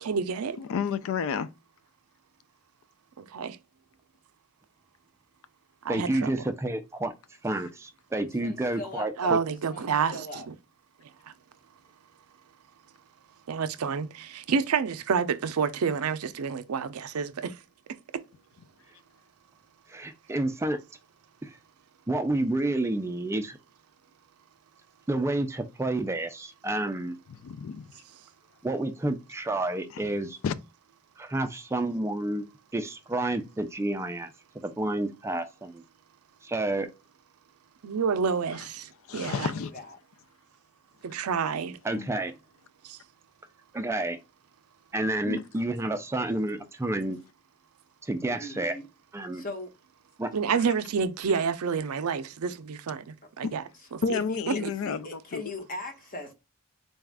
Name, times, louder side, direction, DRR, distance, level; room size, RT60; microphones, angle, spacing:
voice 1, 0.0-0.6 3.2-3.6 5.8-6.3 9.2-10.5 11.3-11.4 13.5-17.6 37.8-39.5 41.0-41.8 42.8-43.0 50.3-53.6 53.9-54.0 54.6-54.7, right 6 dB, 85° right, 0.5 m, -29 dB
voice 2, 0.6-1.5 27.3-28.0 29.9-30.1 30.4-30.5 39.1-39.7 41.9-42.1 45.2-45.4 53.4-53.5 54.0-55.4, left 6 dB, 65° left, 0.3 m, -31 dB
voice 3, 5.9-7.1 7.4-9.4 19.9-20.8 21.4-21.6 22.1-23.6 25.1-27.1 28.6-30.4 31.2-32.5 32.7-35.8 36.4-36.9 41.8-42.3 43.7-44.2 44.9-47.2 48.0-48.8 49.1-49.4 50.2-50.3, right 2 dB, 15° right, 0.4 m, -30 dB
voice 4, 8.4-9.4 9.7-10.5 39.1-40.0 48.4-48.8 49.3-49.7 54.1-56.3, left 2 dB, 40° left, 1.0 m, -40 dB
4.1 x 2.3 x 3.4 m
head